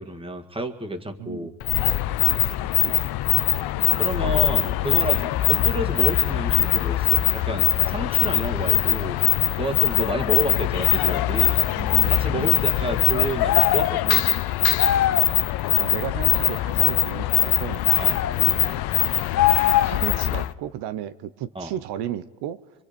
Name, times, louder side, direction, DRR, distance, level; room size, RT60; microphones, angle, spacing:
voice 1, 0.0-1.5 4.0-9.2 9.6-11.6 12.1-14.4 18.0-18.2 21.5-21.7, right 1 dB, 15° right, 7 dB, 2.0 m, -30 dB
voice 2, 1.2-1.6 2.8-3.0 11.7-12.6 15.7-17.9 18.4-18.8 19.8-22.6, right 11 dB, 70° right, 11 dB, 0.9 m, -34 dB
sound 1, 1.6-20.5, left 15 dB, 65° left, 0.9 m, -22 dB
sound 2, 13.4-14.0 14.8-15.3 17.9-18.3 19.3-20.1, left 12 dB, 40° left, 0.8 m, -22 dB
25.5 x 24.0 x 5.2 m, 1.2 s
supercardioid pair, 85°, 40 cm